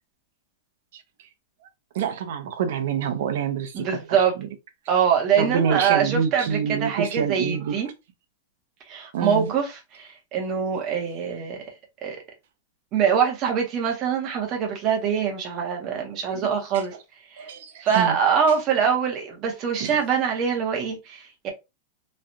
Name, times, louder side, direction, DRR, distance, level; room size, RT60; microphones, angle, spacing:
voice 1, 1.9-4.5 5.4-7.8 9.1-9.5 16.3-16.5 16.7-16.8 17.4-18.2 19.8-20.0, right 7 dB, 60° right, 0.7 m, -27 dB
voice 2, 3.7-4.3 4.9-7.9 8.9-9.7 9.9-11.6 12.0-12.2 12.9-16.9 17.3-17.5 17.8-21.5, right 7 dB, 30° right, 1.0 m, -24 dB
3.1 x 2.4 x 2.7 m
supercardioid pair, 165°, 0 cm